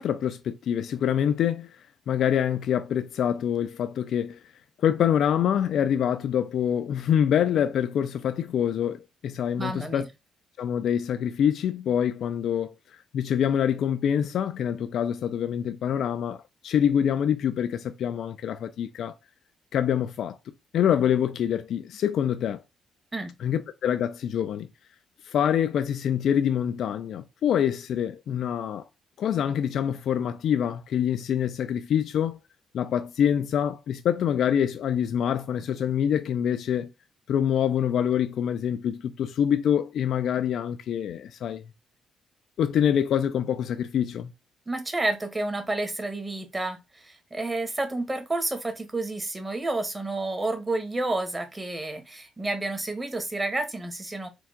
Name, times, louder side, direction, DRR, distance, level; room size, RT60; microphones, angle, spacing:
voice 1, 0.0-1.8 2.1-4.4 4.8-10.1 10.6-19.1 19.7-20.4 20.7-22.6 23.4-24.7 25.2-28.8 29.2-32.4 32.7-36.9 37.3-41.6 42.6-44.3, left 9 dB, 70° left, 0.3 m, -25 dB
voice 2, 9.6-10.0 23.1-23.3 44.7-54.3, right 2 dB, 20° right, 1.2 m, -30 dB
4.5 x 2.3 x 3.7 m
cardioid pair, 90°, 0 cm